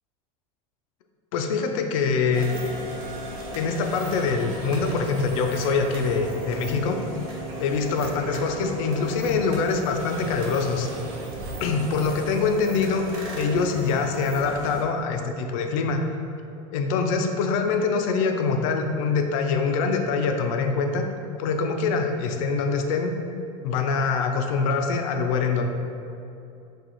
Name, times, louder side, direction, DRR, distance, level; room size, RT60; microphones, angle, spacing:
voice 1, 1.3-2.5 3.5-7.0 7.6-10.9 11.6-13.0 13.4-16.0 16.7-21.0 21.4-23.1 23.6-25.7, left 4 dB, 75° left, 5 dB, 0.5 m, -24 dB
sound 1, 2.3-14.8, right 1 dB, 90° right, 1.0 m, -36 dB
6.0 x 2.4 x 3.0 m, 2.7 s
supercardioid pair, 150°, 17 cm